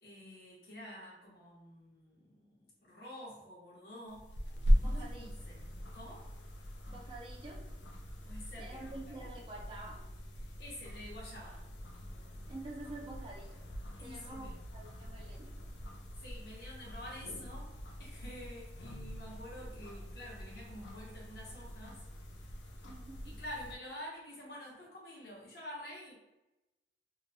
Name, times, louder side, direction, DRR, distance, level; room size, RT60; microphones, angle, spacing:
voice 1, 0.0-4.3 4.8-5.6 5.9-6.2 8.2-9.2 10.4-11.6 14.0-14.5 16.1-17.7 18.0-22.0 23.2-26.1, left 1 dB, 60° left, -4 dB, 0.9 m, -48 dB
sound 1, 4.1-23.7, equal, 85° left, 0.5 m, -39 dB
voice 2, 4.8-5.3 6.9-7.7 8.6-10.1 12.5-13.7 14.0-15.6 22.8-23.4, right 2 dB, 30° right, -1 dB, 0.3 m, -48 dB
2.9 x 2.1 x 2.6 m, 0.99 s
head